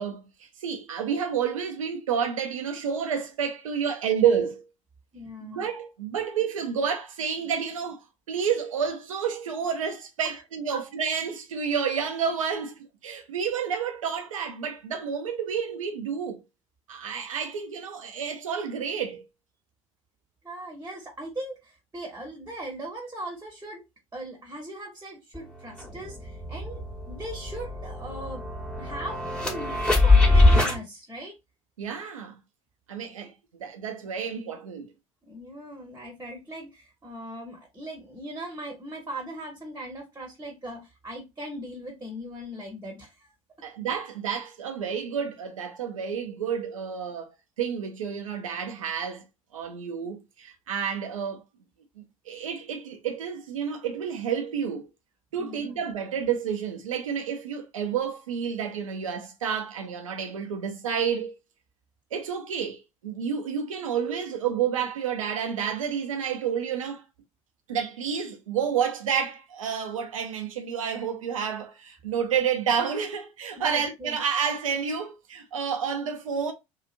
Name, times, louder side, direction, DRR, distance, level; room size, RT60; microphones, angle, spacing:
voice 1, 0.0-4.6 5.4-8.0 8.3-12.7 13.0-16.4 16.9-19.2 31.8-32.3 32.9-34.9 43.6-49.2 49.5-51.4 52.3-54.9 55.3-61.3 62.1-67.0 67.7-76.5, right 7 dB, 80° right, 0.5 m, -30 dB
voice 2, 5.1-5.7 10.2-10.4 10.7-10.8 20.4-23.8 24.1-28.4 28.8-31.4 33.2-33.3 35.3-43.3 55.4-55.8 73.6-74.2, right 1 dB, 15° right, 1.0 m, -39 dB
sound 1, 25.3-25.4 25.8-30.8, left 2 dB, 5° left, 1.2 m, -22 dB
2.8 x 2.4 x 2.4 m
figure-of-eight pair, 65°, 17 cm